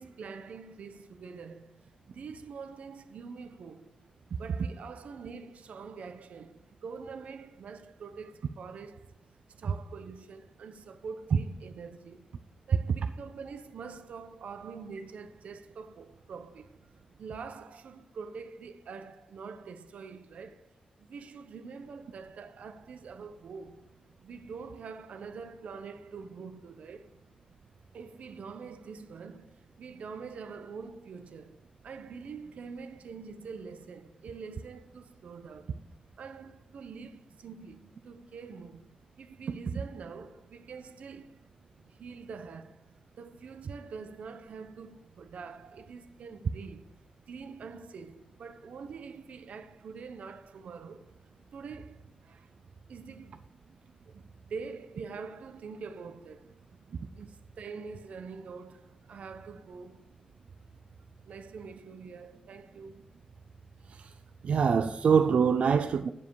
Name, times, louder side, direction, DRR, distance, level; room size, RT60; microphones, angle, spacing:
voice 1, 0.0-3.9 4.4-9.1 9.6-12.3 12.7-16.9 17.2-20.7 21.0-24.0 24.2-27.2 27.9-35.8 36.2-41.4 41.9-47.0 47.3-51.2 51.5-52.5 52.9-53.4 54.1-56.6 57.1-60.1 61.2-63.1 63.8-63.9, right 5 dB, 85° right, 0.9 m, -45 dB
voice 2, 64.4-66.1, right 6 dB, 65° right, 0.5 m, -25 dB
9.4 x 7.4 x 4.7 m
wide cardioid pair, 170°, 2 cm